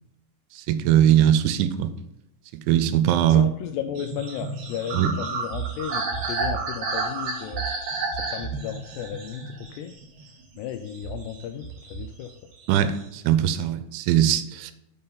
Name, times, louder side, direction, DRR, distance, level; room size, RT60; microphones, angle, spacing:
voice 1, 0.5-1.9 2.7-3.5 4.9-5.1 12.7-14.7, right 11 dB, 85° right, 3.0 m, -20 dB
voice 2, 3.3-7.6 8.1-9.9 10.6-12.3, left 9 dB, 85° left, 2.4 m, -34 dB
sound 1, 4.0-10.4 10.9-12.3 12.5-13.1, right 4 dB, 60° right, 3.2 m, -31 dB
6.9 x 5.5 x 5.4 m
omnidirectional pair, 5.3 m